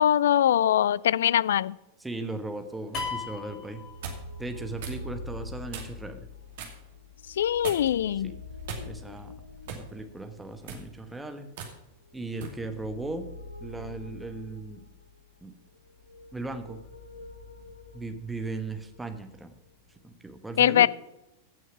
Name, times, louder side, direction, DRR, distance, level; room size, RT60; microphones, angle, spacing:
voice 1, 0.0-1.8 7.4-8.3 20.6-20.9, left 10 dB, 60° left, 22 dB, 0.3 m, -22 dB
voice 2, 2.0-6.3 8.2-8.4 8.8-9.3 9.7-11.5 12.1-13.3 13.6-14.8 15.4-15.5 16.3-16.8 17.9-19.5 20.0-20.9, right 2 dB, 5° right, 6 dB, 1.2 m, -37 dB
sound 1, 2.6-3.1 4.0-4.3 4.8-5.0 5.7-6.1 6.6-6.8 7.6-8.0 8.7-9.2 9.7-9.9 10.6-10.9 11.6-11.7 12.4-12.6, right 5 dB, 55° right, 2.4 m, -39 dB
sound 2, 2.9-4.6, left 5 dB, 35° left, 2.0 m, -37 dB
sound 3, 3.4-20.0, left 2 dB, 80° left, 1.3 m, -45 dB
16.0 x 6.3 x 5.9 m, 0.93 s
figure-of-eight pair, 90°, 0 cm